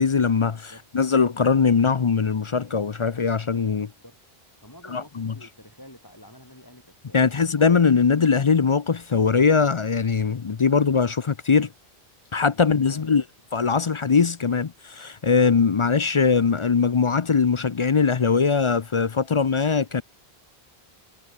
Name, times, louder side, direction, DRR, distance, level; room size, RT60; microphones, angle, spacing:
voice 1, 0.0-3.9 4.9-5.3 7.1-11.7 12.3-13.2 13.5-20.0, left 5 dB, 40° left, 0.5 m, -21 dB
voice 2, 0.5-0.8 3.8-4.2 4.6-7.7 12.5-13.1, left 1 dB, 20° left, 5.1 m, -49 dB
omnidirectional pair, 1.1 m